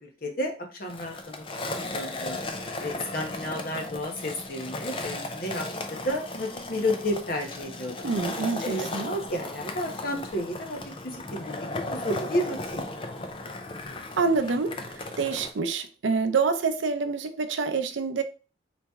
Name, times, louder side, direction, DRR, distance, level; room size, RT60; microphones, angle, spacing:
voice 1, 0.0-8.1 8.6-10.8 11.0-12.9, left 1 dB, 50° left, 1.0 m, -32 dB
Skateboard, 0.9-15.5, left 2 dB, 30° left, 0.5 m, -36 dB
voice 2, 8.0-9.1 14.2-18.2, right 4 dB, 80° right, 0.5 m, -27 dB
4.2 x 3.1 x 3.5 m
head